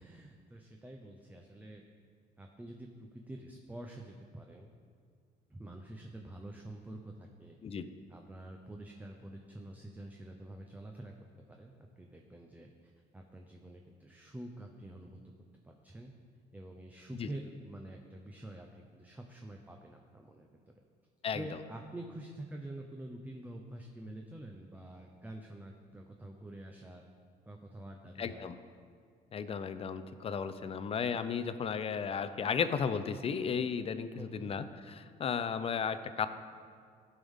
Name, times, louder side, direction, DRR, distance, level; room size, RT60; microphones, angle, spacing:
voice 1, 0.0-1.8 2.4-4.7 5.5-7.6 8.1-11.1 11.5-15.3 15.6-16.1 16.5-20.5 21.3-27.0 27.5-28.5 34.1-34.5, right 1 dB, 10° right, 2 dB, 0.6 m, -47 dB
voice 2, 28.2-28.6 29.3-36.3, left 6 dB, 35° left, 11 dB, 0.5 m, -34 dB
13.5 x 5.5 x 3.6 m, 2.1 s
cardioid pair, 110°, 17 cm